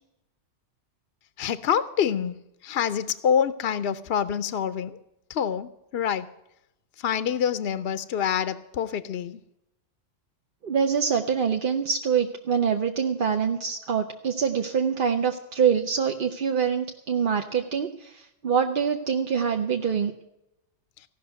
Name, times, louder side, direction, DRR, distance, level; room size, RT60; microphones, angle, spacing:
voice 1, 1.4-2.4 2.6-5.0 5.3-6.3 7.0-9.4, left 8 dB, 60° left, 13 dB, 0.8 m, -26 dB
voice 2, 10.6-20.1, right 7 dB, 50° right, 3 dB, 0.9 m, -25 dB
16.0 x 6.2 x 9.3 m, 0.87 s
omnidirectional pair, 1.2 m